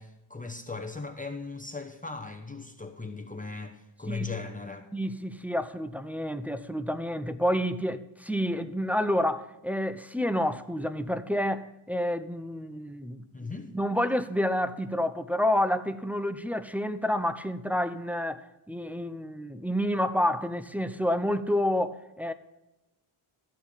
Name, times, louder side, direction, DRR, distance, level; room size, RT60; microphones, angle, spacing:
voice 1, 0.0-4.9 13.3-13.7, left 4 dB, 15° left, 0.9 m, -38 dB
voice 2, 4.9-13.2 13.7-18.4 18.7-22.3, equal, 5° right, 0.5 m, -29 dB
13.5 x 4.5 x 8.6 m
wide cardioid pair, 80°, 49 cm